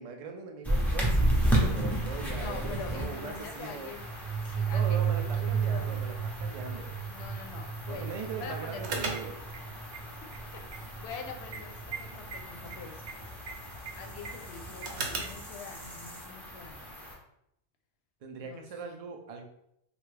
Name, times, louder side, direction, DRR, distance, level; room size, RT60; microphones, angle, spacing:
voice 1, 0.0-3.9 4.7-6.9 7.9-9.4 18.2-19.4, right 5 dB, 60° right, 4 dB, 0.3 m, -41 dB
sound 1, 0.6-17.1, right 1 dB, ahead, 0.5 m, -34 dB
voice 2, 2.3-4.0 4.4-6.0 7.1-9.0 10.2-13.1 13.9-16.9 18.4-18.7, left 5 dB, 75° left, 4 dB, 0.8 m, -45 dB
sound 2, 4.0-12.4, right 8 dB, 35° left, 1.0 m, -34 dB
sound 3, 8.8-15.5, right 3 dB, 75° right, 0.9 m, -40 dB
3.3 x 2.3 x 3.2 m, 0.78 s
omnidirectional pair, 1.1 m